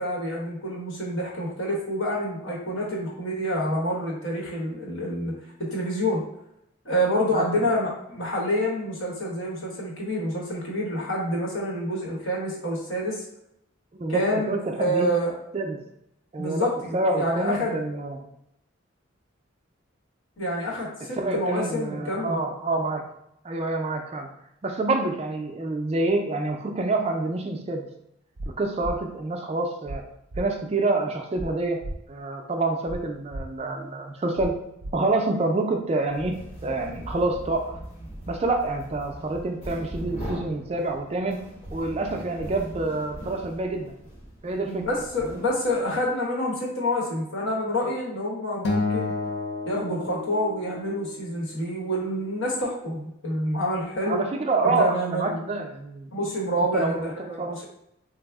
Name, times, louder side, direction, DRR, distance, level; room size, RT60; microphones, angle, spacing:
voice 1, 0.0-5.3 5.6-6.2 6.8-13.2 14.1-15.3 16.4-17.8 20.4-22.4 44.6-49.1 49.6-54.2 54.6-55.4 56.1-57.6, equal, 70° left, -3 dB, 1.0 m, -27 dB
voice 2, 7.3-7.7 13.9-15.1 15.5-15.8 16.3-18.3 21.2-23.0 23.4-24.3 24.6-27.9 28.6-30.0 30.4-31.8 32.1-34.5 34.9-36.4 36.6-37.8 38.3-41.4 41.7-43.9 44.4-44.8 45.3-45.4 54.1-56.1 56.7-57.6, right 2 dB, 30° right, 3 dB, 0.3 m, -27 dB
sound 1, 28.4-28.5 28.8-29.0 29.9-30.0 30.3-30.4 31.4-31.5 31.8-32.0 32.9-33.0 33.3-33.4 34.4-34.5 34.8-34.9, right 1 dB, 85° right, 0.6 m, -33 dB
sound 2, 36.0-46.0, equal, 30° left, 0.9 m, -40 dB
Acoustic guitar, 48.6-51.0, left 3 dB, 55° left, 0.4 m, -30 dB
3.4 x 2.0 x 3.4 m, 0.78 s
head